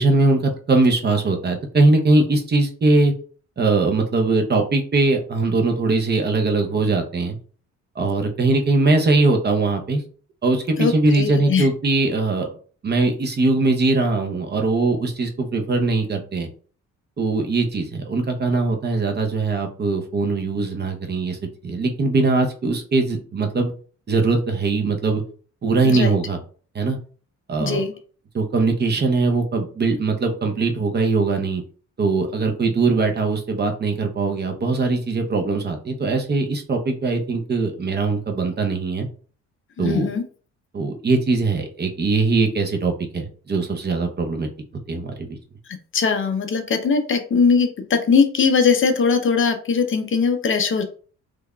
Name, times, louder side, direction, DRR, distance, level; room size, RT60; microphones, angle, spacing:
voice 1, 0.0-3.1 3.6-7.4 8.0-10.0 10.4-12.5 12.8-16.5 17.2-21.4 21.6-23.7 24.1-25.2 25.6-26.4 26.7-27.0 27.5-27.8 28.3-31.6 32.0-39.1 39.8-40.1 40.7-44.5 44.9-45.4, right 3 dB, 35° right, 4 dB, 0.8 m, -21 dB
voice 2, 10.8-11.7 25.8-26.1 27.6-27.9 39.8-40.2 45.9-50.8, left 5 dB, 40° left, 7 dB, 0.6 m, -20 dB
3.6 x 3.3 x 2.2 m, 0.41 s
cardioid pair, 90°, 30 cm